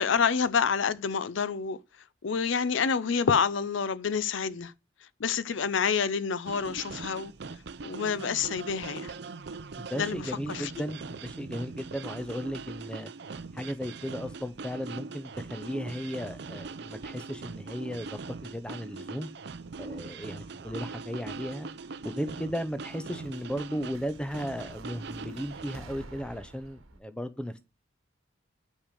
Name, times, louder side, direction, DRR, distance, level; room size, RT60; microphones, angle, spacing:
voice 1, 0.0-1.8 2.2-4.7 5.2-7.3 7.8-9.1 10.0-10.7, left 6 dB, 70° left, 0.5 m, -28 dB
sound 1, 6.5-25.8, right 4 dB, 55° right, 0.5 m, -41 dB
voice 2, 9.8-13.1 13.5-19.3 19.8-21.7 22.0-27.6, equal, 5° left, 0.6 m, -36 dB
sound 2, 22.9-27.0, right 2 dB, 85° right, 1.2 m, -51 dB
6.4 x 6.1 x 6.7 m
head